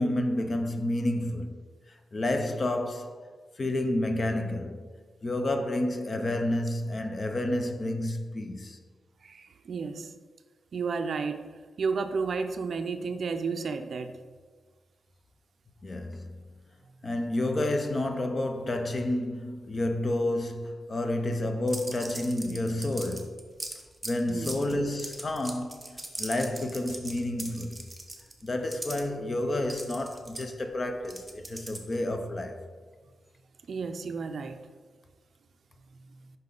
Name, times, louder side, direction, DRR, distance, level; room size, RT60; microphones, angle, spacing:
voice 1, 0.0-1.6 1.9-3.2 3.6-4.9 5.2-8.8 15.8-16.4 17.0-23.4 24.0-27.9 28.4-32.6, left 1 dB, 35° left, 0.5 m, -30 dB
voice 2, 9.2-10.1 10.7-11.5 11.8-14.2 24.3-24.6 33.7-34.6, right 5 dB, 60° right, 0.4 m, -32 dB
sound 1, 21.7-29.0 29.7-32.1, right 1 dB, 10° right, 0.8 m, -40 dB
5.7 x 5.4 x 3.8 m
wide cardioid pair, 125°, 0 cm